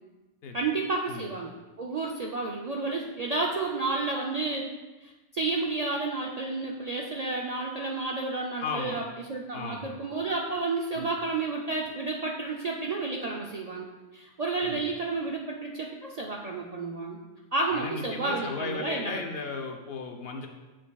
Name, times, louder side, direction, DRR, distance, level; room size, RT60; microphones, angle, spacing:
voice 1, 0.5-1.5 1.8-4.7 5.0-9.0 9.3-13.9 14.1-17.2 17.5-19.2, right 3 dB, 50° right, -1 dB, 0.4 m, -31 dB
voice 2, 8.6-9.0 9.5-9.9 10.9-11.1 14.6-14.8 17.7-20.5, left 4 dB, 60° left, 3 dB, 0.8 m, -35 dB
7.4 x 7.0 x 2.3 m, 1.2 s
omnidirectional pair, 1.2 m